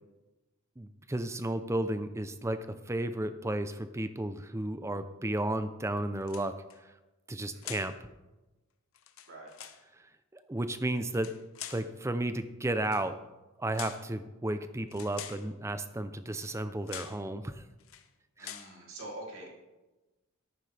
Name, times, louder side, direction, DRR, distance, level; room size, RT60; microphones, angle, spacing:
voice 1, 0.8-6.6 7.3-8.0 10.5-11.4 11.7-13.2 13.6-17.6 18.4-18.5, right 1 dB, 15° right, 11 dB, 0.5 m, -33 dB
sound 1, 6.2-6.8 7.6-8.0 8.9-9.8 11.0-11.9 12.8-13.1 13.7-14.1 14.9-15.5 16.4-16.6 16.9-17.2 17.8-18.1 18.4-18.8, left 10 dB, 65° left, 0.8 m, -45 dB
voice 2, 7.5-7.9 9.3-9.5 18.4-19.7, right 1 dB, 65° right, -2 dB, 3.2 m, -45 dB
13.5 x 12.0 x 3.4 m, 1.1 s
head